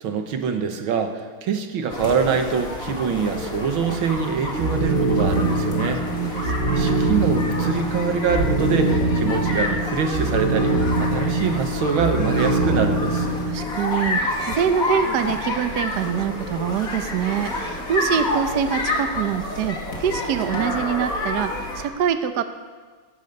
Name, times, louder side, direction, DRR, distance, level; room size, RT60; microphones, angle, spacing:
voice 1, 0.0-13.3, right 6 dB, 80° right, 6 dB, 2.1 m, -25 dB
sound 1, 1.9-21.8, left 2 dB, 45° left, 2.6 m, -29 dB
sound 2, 4.5-13.8, right 2 dB, 45° right, 1.0 m, -23 dB
voice 2, 6.1-7.0 13.4-22.4, right 8 dB, 60° right, 9 dB, 1.2 m, -25 dB
17.5 x 13.5 x 5.4 m, 1.4 s
omnidirectional pair, 2.2 m